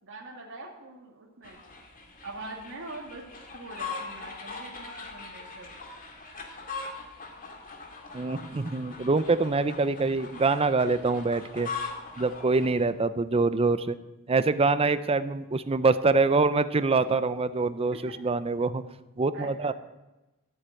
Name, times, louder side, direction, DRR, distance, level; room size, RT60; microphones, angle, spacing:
voice 1, 0.0-1.6 2.2-3.2 3.5-5.7 18.1-18.2 19.3-19.7, right 2 dB, 60° right, -2 dB, 2.3 m, -43 dB
sound 1, 1.4-12.9, left 4 dB, 40° left, 2.2 m, -41 dB
voice 2, 8.1-11.7 12.2-14.0 14.3-18.8 19.2-19.7, right 3 dB, 25° right, 13 dB, 0.5 m, -25 dB
14.0 x 7.9 x 9.1 m, 1.1 s
head